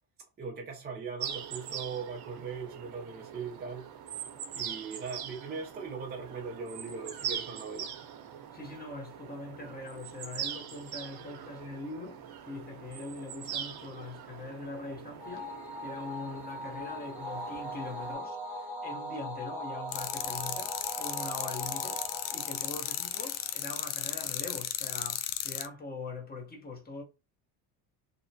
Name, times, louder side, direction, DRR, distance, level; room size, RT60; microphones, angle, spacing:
voice 1, 0.4-3.9 4.5-7.9, right 5 dB, 20° right, 0.5 m, -40 dB
sound 1, 1.2-18.1, right 9 dB, 55° right, 0.8 m, -42 dB
voice 2, 8.5-27.0, left 3 dB, 20° left, 0.9 m, -42 dB
sound 2, 15.2-23.8, equal, 5° right, 1.1 m, -40 dB
sound 3, 19.9-25.7, left 12 dB, 75° left, 0.5 m, -35 dB
2.8 x 2.1 x 2.6 m
supercardioid pair, 100°, 46 cm